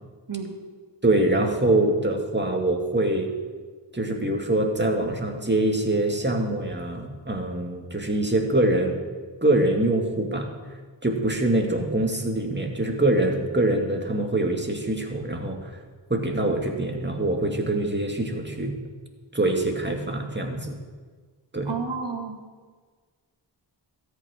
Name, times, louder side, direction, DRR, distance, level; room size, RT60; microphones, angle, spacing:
voice 1, 1.0-3.3 3.9-9.0 9.4-10.5 11.0-15.7 16.1-18.7 19.3-20.8 21.5-21.7, right 1 dB, 25° right, 2 dB, 2.3 m, -24 dB
voice 2, 21.7-22.4, right 5 dB, 65° right, 1 dB, 2.1 m, -31 dB
13.5 x 6.0 x 9.7 m, 1.5 s
cardioid pair, 45°, 46 cm